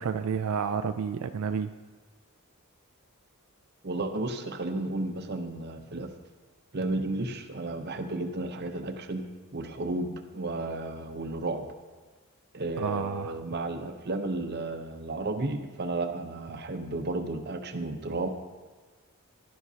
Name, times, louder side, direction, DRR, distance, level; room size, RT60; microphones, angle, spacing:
voice 1, 0.0-1.7 12.8-13.4, right 6 dB, 85° right, 8 dB, 0.4 m, -30 dB
voice 2, 3.8-6.1 6.7-9.3 9.5-11.7 12.5-18.3, right 2 dB, 50° right, 7 dB, 0.8 m, -33 dB
11.5 x 11.0 x 2.8 m, 1.4 s
head